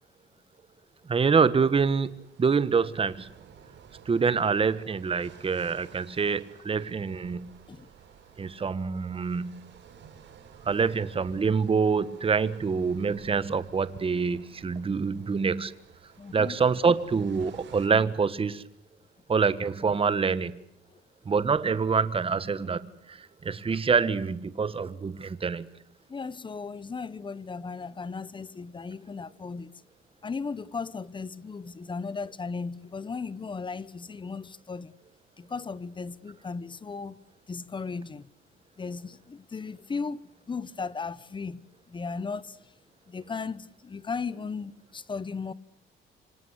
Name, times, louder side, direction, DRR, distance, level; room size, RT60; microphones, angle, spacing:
voice 1, 1.1-2.1 2.4-3.3 4.1-7.6 8.4-9.6 10.6-15.7 16.3-18.6 19.3-20.6 21.2-23.2 23.4-25.6, right 5 dB, 25° right, 1.4 m, -26 dB
sound 1, 1.8-17.9, right 7 dB, 60° right, 4.6 m, -53 dB
voice 2, 16.2-16.6 20.9-21.0 26.1-29.7 30.2-34.9 35.4-37.2 37.5-38.3 38.8-41.6 41.9-42.7 43.1-45.5, left 4 dB, 25° left, 1.0 m, -36 dB
26.5 x 25.0 x 8.2 m
cardioid pair, 125°, 21 cm